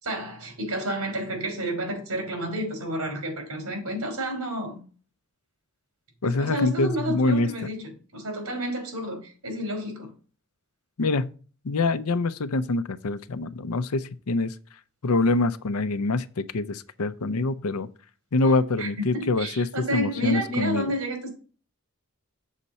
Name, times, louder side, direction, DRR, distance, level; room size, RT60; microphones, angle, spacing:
voice 1, 0.0-4.8 6.2-10.1 18.4-18.5 18.8-21.3, right 1 dB, 80° right, 3.6 m, -30 dB
voice 2, 6.2-7.7 11.0-11.3 11.6-14.5 15.0-17.9 18.3-19.7 19.9-20.9, left 3 dB, 85° left, 0.6 m, -25 dB
7.3 x 4.2 x 6.7 m
head